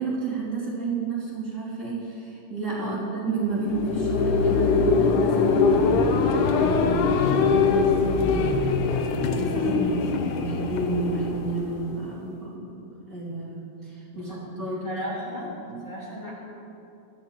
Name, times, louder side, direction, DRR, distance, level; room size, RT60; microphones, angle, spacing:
voice 1, 0.0-6.1 6.5-8.9 9.4-12.8 13.1-14.9 15.4-15.8, right 2 dB, 35° right, -7 dB, 2.9 m, -31 dB
voice 2, 2.7-3.0 5.8-6.3 14.1-16.3, equal, 40° left, -6 dB, 2.2 m, -36 dB
sound 1, 3.5-12.1, left 4 dB, 90° left, 2.4 m, -23 dB
19.0 x 13.5 x 3.0 m, 2.7 s
omnidirectional pair, 3.4 m